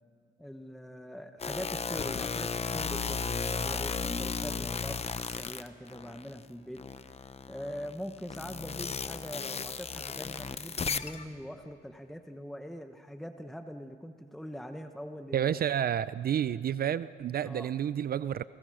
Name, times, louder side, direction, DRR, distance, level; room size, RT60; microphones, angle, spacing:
voice 1, 0.4-6.9 7.5-15.6 17.4-17.8, equal, ahead, 7 dB, 1.0 m, -43 dB
sound 1, 1.4-6.4 6.8-11.2, left 5 dB, 30° left, 0.9 m, -35 dB
voice 2, 15.3-18.4, right 9 dB, 50° right, 16 dB, 0.5 m, -30 dB
29.0 x 19.5 x 6.3 m, 2.4 s
cardioid pair, 90°, 20 cm